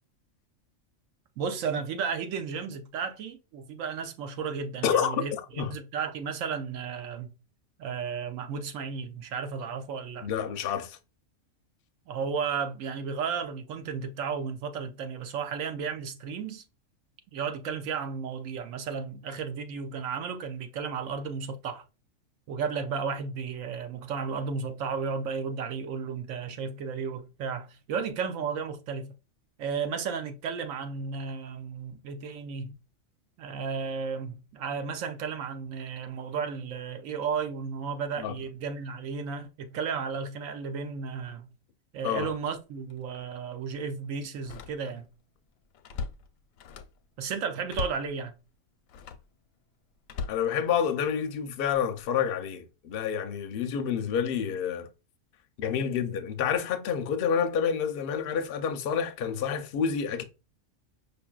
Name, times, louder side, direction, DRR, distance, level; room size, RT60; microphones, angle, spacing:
voice 1, 1.4-7.3 7.8-10.3 12.1-16.6 17.3-21.8 22.5-29.1 29.6-32.7 33.4-41.5 41.9-45.1 47.2-48.3, right 6 dB, 80° right, 1.0 m, -33 dB
voice 2, 4.8-5.2 5.6-5.7 10.2-11.0 38.2-38.4 42.0-42.3 50.3-54.9 55.6-60.2, left 7 dB, 60° left, 0.6 m, -28 dB
Slam, 42.2-42.4 42.9-43.0 44.3-45.1 45.5-47.0 47.7-48.1 48.9-49.3 50.0-51.1 51.7-52.0, left 5 dB, 90° left, 1.0 m, -39 dB
5.3 x 2.6 x 2.3 m
omnidirectional pair, 1.4 m